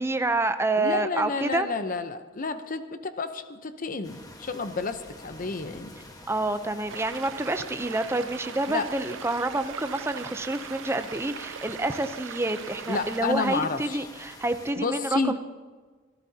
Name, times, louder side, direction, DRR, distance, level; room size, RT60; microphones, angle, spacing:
voice 1, 0.0-1.7 6.3-15.4, right 2 dB, 15° right, 9 dB, 0.6 m, -28 dB
voice 2, 0.8-6.0 8.7-8.9 12.9-14.0 14.8-15.4, left 4 dB, 45° left, 10 dB, 0.8 m, -30 dB
sound 1, 4.0-14.7, left 1 dB, 20° left, 1.4 m, -47 dB
sound 2, 6.9-13.2, right 9 dB, 75° right, 0.4 m, -41 dB
25.0 x 13.5 x 2.8 m, 1.4 s
head